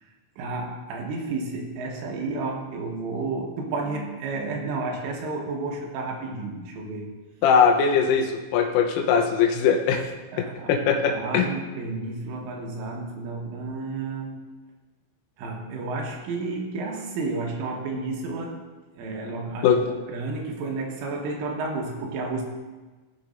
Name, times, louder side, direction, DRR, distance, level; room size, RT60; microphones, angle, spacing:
voice 1, 0.4-7.1 10.3-10.7 11.1-14.4 15.4-18.6 19.0-22.4, right 3 dB, 80° right, -1 dB, 3.6 m, -31 dB
voice 2, 7.4-10.0 10.4-11.5 19.6-19.8, left 6 dB, 85° left, 2 dB, 3.4 m, -21 dB
17.0 x 6.5 x 2.6 m, 1.3 s
omnidirectional pair, 6.0 m